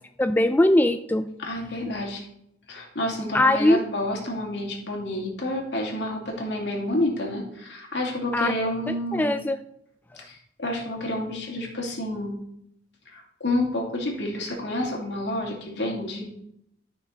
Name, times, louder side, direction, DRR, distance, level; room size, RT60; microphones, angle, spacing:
voice 1, 0.2-1.3 3.3-3.8 8.3-8.5 9.1-9.6, left 1 dB, 10° left, 8 dB, 0.3 m, -20 dB
voice 2, 1.4-2.3 2.7-9.4 10.2-12.4 13.1-16.3, left 1 dB, 70° left, 0 dB, 2.7 m, -29 dB
13.0 x 6.2 x 4.0 m, 0.73 s
head